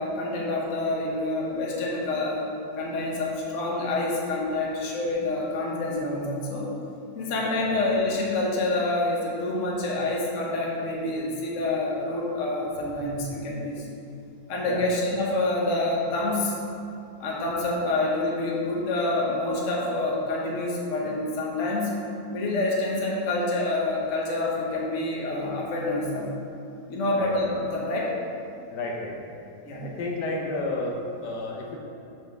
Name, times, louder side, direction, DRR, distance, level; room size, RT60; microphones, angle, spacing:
voice 1, 0.0-6.7 7.1-13.8 14.5-16.5 17.2-21.9 22.3-26.3 26.9-28.1 29.6-29.9, left 2 dB, 50° left, -3 dB, 1.2 m, -27 dB
voice 2, 28.7-29.4 29.8-31.8, left 2 dB, 80° left, -1 dB, 1.6 m, -31 dB
5.6 x 4.5 x 5.7 m, 2.7 s
omnidirectional pair, 1.8 m